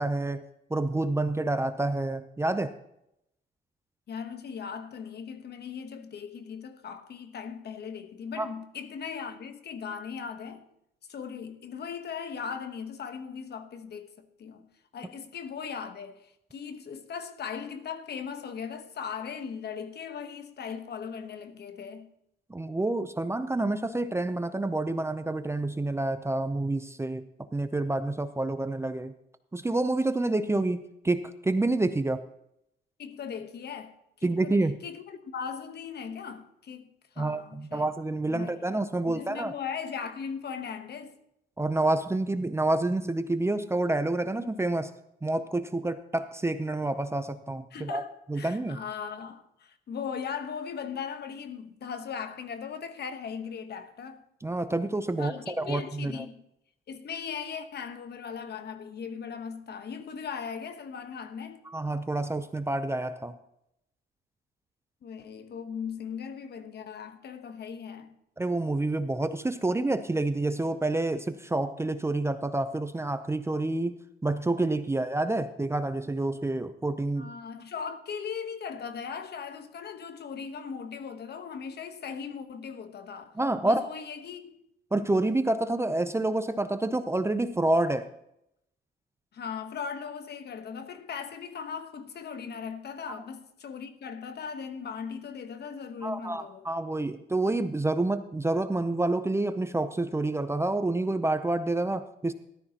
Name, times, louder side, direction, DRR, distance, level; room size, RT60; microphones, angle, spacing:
voice 1, 0.0-2.8 8.4-8.5 22.5-27.3 27.5-29.1 29.5-32.2 34.2-34.8 37.2-39.5 41.6-44.9 45.2-48.0 48.3-48.8 54.4-56.2 61.7-63.4 68.4-74.0 74.2-77.3 83.4-83.8 84.9-88.1 93.1-93.2 96.0-102.3, right 2 dB, 15° right, 0.6 m, -28 dB
voice 2, 4.1-10.7 11.1-14.7 14.9-22.1 33.0-37.9 38.3-38.6 39.1-41.2 47.7-48.1 48.4-54.2 55.2-56.4 56.9-61.6 65.0-68.1 77.2-83.4 83.6-84.6 89.3-96.7, left 6 dB, 55° left, 1.1 m, -38 dB
14.0 x 12.0 x 2.9 m
cardioid pair, 90°, 20 cm